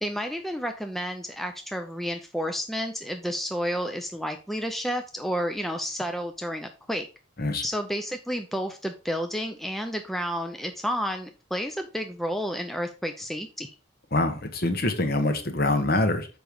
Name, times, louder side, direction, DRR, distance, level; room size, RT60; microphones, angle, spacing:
voice 1, 0.0-7.1 7.6-13.7, equal, ahead, 5 dB, 0.5 m, -31 dB
voice 2, 14.1-16.3, left 2 dB, 45° left, 7 dB, 1.2 m, -25 dB
6.8 x 5.2 x 4.7 m, 0.33 s
head